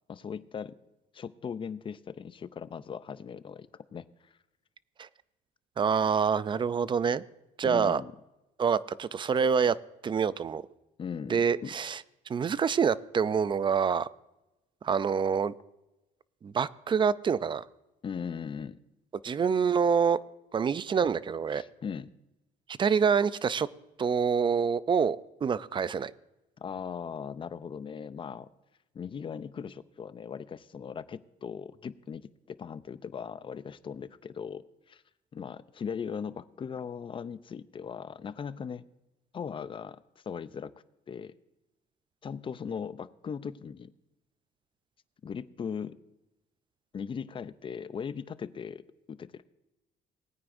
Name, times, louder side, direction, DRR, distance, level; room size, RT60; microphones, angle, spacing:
voice 1, 0.1-0.8 1.1-4.1 7.6-8.1 11.0-11.8 18.0-18.8 21.5-22.1 26.6-28.5 28.9-35.0 35.3-38.9 39.3-40.0 40.3-40.7 41.1-41.3 42.2-43.9 45.2-46.0 46.9-49.4, left 7 dB, 30° left, 15 dB, 0.5 m, -39 dB
voice 2, 5.8-7.2 7.6-8.0 8.6-9.8 10.0-10.6 11.3-12.0 12.3-14.1 14.8-15.5 16.4-17.6 19.2-20.2 20.5-21.6 22.8-23.7 24.0-26.1, right 6 dB, 30° right, 17 dB, 0.4 m, -26 dB
19.5 x 9.4 x 2.6 m, 0.98 s
cardioid pair, 110°, 17 cm